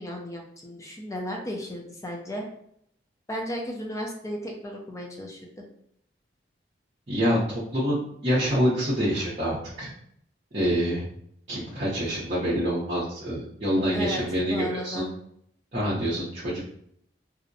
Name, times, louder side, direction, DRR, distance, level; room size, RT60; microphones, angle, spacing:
voice 1, 0.0-2.5 3.3-5.6 13.9-14.2 14.5-15.1, left 1 dB, 15° left, 0 dB, 0.4 m, -34 dB
voice 2, 7.1-9.9 10.5-11.0 11.5-15.1 15.7-16.6, equal, 40° right, -9 dB, 0.6 m, -26 dB
2.6 x 2.0 x 2.6 m, 0.69 s
head